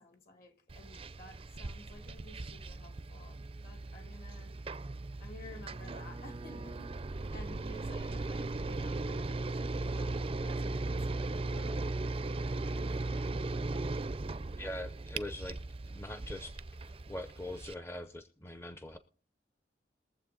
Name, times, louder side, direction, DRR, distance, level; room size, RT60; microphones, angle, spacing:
voice 1, 0.0-4.6 5.2-6.9 7.3-13.3, left 1 dB, 55° left, 2.3 m, -54 dB
sound 1, 0.7-17.7, right 2 dB, 30° right, 0.5 m, -38 dB
voice 2, 14.6-15.6 15.9-16.5 16.8-19.0, left 1 dB, 15° left, 0.6 m, -42 dB
22.5 x 7.5 x 3.9 m
head